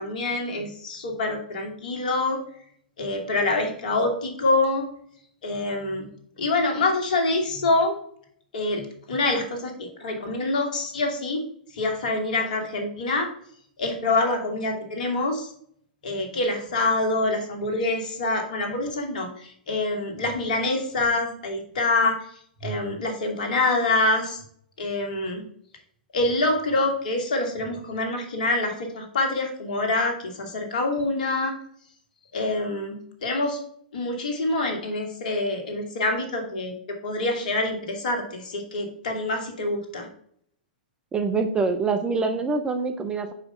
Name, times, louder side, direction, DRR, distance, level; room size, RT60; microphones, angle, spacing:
voice 1, 0.0-2.4 3.0-4.9 5.4-6.1 6.4-8.0 8.5-11.4 11.7-13.3 13.8-15.5 16.0-22.2 22.6-24.4 24.8-25.4 26.1-31.5 32.3-33.6 33.9-40.1, left 2 dB, 60° left, 4 dB, 1.8 m, -26 dB
voice 2, 41.1-43.3, right 4 dB, 15° right, 7 dB, 0.7 m, -25 dB
4.9 x 4.8 x 5.5 m, 0.64 s
figure-of-eight pair, 105°, 5 cm